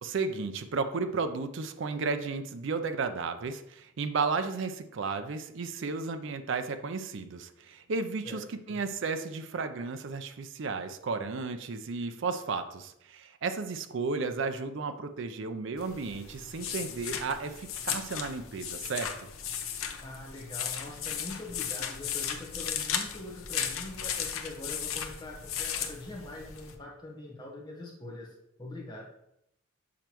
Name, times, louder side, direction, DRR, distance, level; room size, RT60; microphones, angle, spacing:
voice 1, 0.0-19.1, right 4 dB, 60° right, 9 dB, 0.4 m, -33 dB
voice 2, 8.2-8.8 20.0-29.0, left 2 dB, 20° left, -2 dB, 1.0 m, -43 dB
sound 1, 15.8-26.7, left 8 dB, 80° left, 0.7 m, -36 dB
7.1 x 4.5 x 2.9 m, 0.79 s
head